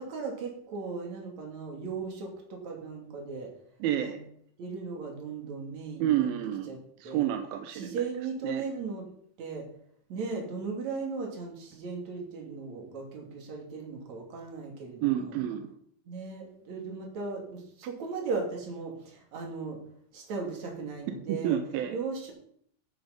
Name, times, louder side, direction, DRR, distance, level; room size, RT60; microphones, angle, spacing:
voice 1, 0.0-3.5 4.0-4.1 4.6-6.3 6.7-6.8 7.0-7.3 7.7-9.0 9.4-9.7 10.1-15.3 16.1-19.8 20.1-21.6 21.9-22.3, right 4 dB, 50° right, 1 dB, 3.7 m, -37 dB
voice 2, 3.8-4.2 6.0-6.7 7.0-8.0 8.4-8.7 15.0-15.7 21.3-22.0, right 11 dB, 85° right, 7 dB, 2.7 m, -29 dB
14.0 x 7.1 x 5.3 m, 0.65 s
omnidirectional pair, 4.3 m